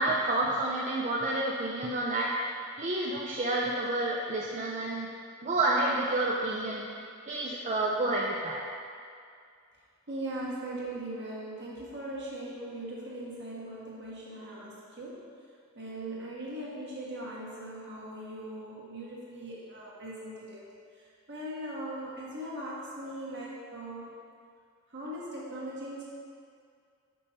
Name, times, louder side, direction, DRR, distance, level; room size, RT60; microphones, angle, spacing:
voice 1, 0.0-2.4 2.8-5.1 5.4-6.9 7.3-8.6, right 2 dB, 35° right, -3 dB, 0.4 m, -29 dB
voice 2, 10.1-15.2 15.7-20.6 21.3-24.1 24.9-26.0, right 1 dB, 50° right, -5 dB, 1.4 m, -39 dB
5.4 x 5.3 x 4.2 m, 2.3 s
head